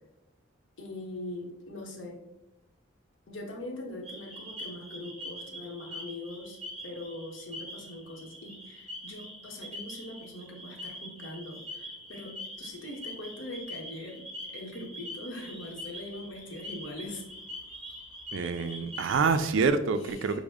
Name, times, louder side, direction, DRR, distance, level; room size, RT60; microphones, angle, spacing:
voice 1, 0.8-2.2 3.3-14.2 14.5-17.2 20.0-20.4, left 1 dB, 65° left, 0 dB, 0.9 m, -42 dB
sound 1, 4.0-19.5, left 1 dB, ahead, 0.7 m, -44 dB
voice 2, 18.3-20.4, right 5 dB, 65° right, 9 dB, 0.3 m, -26 dB
6.1 x 2.1 x 3.4 m, 0.87 s
head